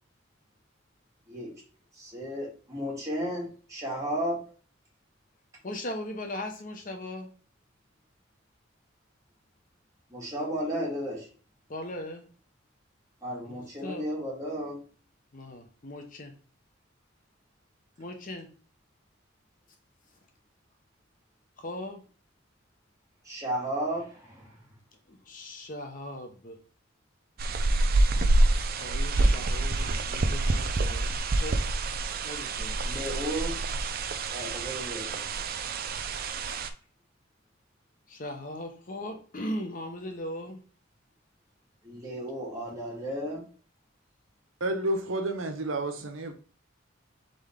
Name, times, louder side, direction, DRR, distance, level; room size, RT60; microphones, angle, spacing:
voice 1, 1.9-4.4 10.1-11.3 13.2-14.8 23.2-24.6 32.8-33.5 34.3-35.3 41.8-43.4, equal, 15° right, 2.0 m, -34 dB
voice 2, 5.6-7.3 11.7-12.3 13.4-14.1 15.3-16.3 18.0-18.5 21.6-22.0 25.1-26.6 28.8-31.1 31.4-31.7 32.2-33.0 38.1-40.6, left 1 dB, 40° left, 0.8 m, -39 dB
sound 1, 27.4-36.7, right 2 dB, 50° right, 0.4 m, -27 dB
voice 3, 44.6-46.3, right 1 dB, 85° right, 0.8 m, -30 dB
3.9 x 3.8 x 3.6 m
head